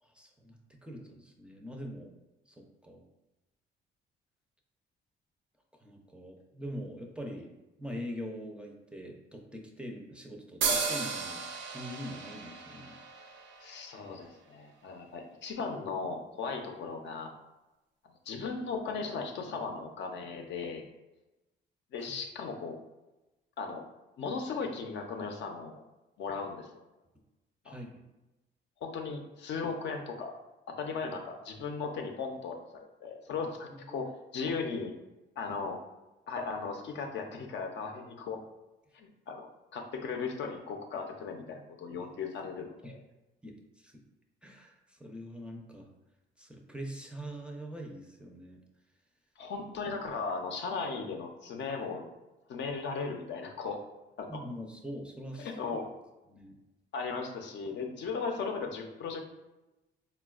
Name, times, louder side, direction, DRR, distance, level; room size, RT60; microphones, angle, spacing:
voice 1, 0.0-2.1 2.5-3.0 5.8-7.5 7.8-13.0 22.0-22.1 27.6-28.1 33.7-34.1 42.8-42.9 43.4-44.0 44.4-45.9 46.4-48.6 54.3-55.8 56.3-56.6, equal, 5° right, 0 dB, 0.4 m, -43 dB
sound 1, 10.6-14.2, right 5 dB, 70° right, 0.5 m, -34 dB
voice 2, 13.6-17.3 18.3-20.8 21.9-22.8 23.6-23.8 24.2-25.8 26.2-26.7 27.7-27.8 28.8-30.4 30.7-32.6 33.0-34.9 35.4-35.8 36.3-38.4 38.9-39.5 39.7-43.0 49.4-52.0 52.5-53.8 54.2-54.3 55.4-55.8 56.9-59.2, left 4 dB, 65° left, 3 dB, 0.5 m, -37 dB
4.0 x 2.2 x 2.3 m, 1.0 s
cardioid pair, 90°, 20 cm